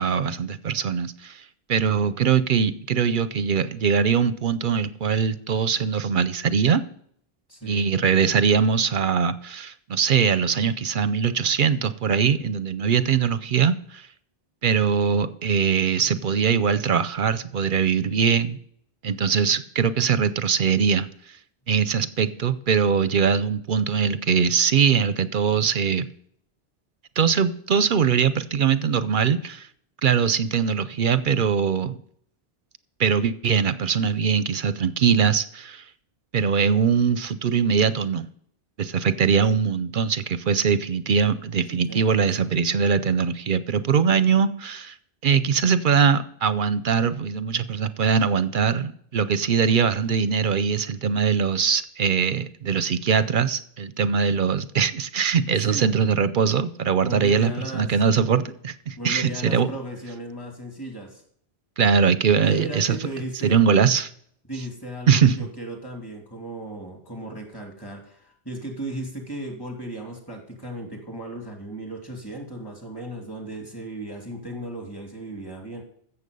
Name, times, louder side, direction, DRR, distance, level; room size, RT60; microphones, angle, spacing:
voice 1, 0.0-6.8 7.6-14.1 14.6-18.6 19.0-21.4 21.7-26.1 27.2-29.7 30.0-32.0 33.0-35.8 36.3-38.3 38.8-45.0 45.2-59.7 61.8-63.0 63.4-64.1 65.1-65.4, right 6 dB, 60° right, 14 dB, 0.7 m, -22 dB
voice 2, 7.5-7.9 41.7-42.5 55.5-55.9 57.0-58.0 59.0-61.2 62.4-63.6 64.5-75.8, right 1 dB, 20° left, 1 dB, 2.8 m, -36 dB
15.0 x 7.2 x 5.4 m, 0.64 s
omnidirectional pair, 1.0 m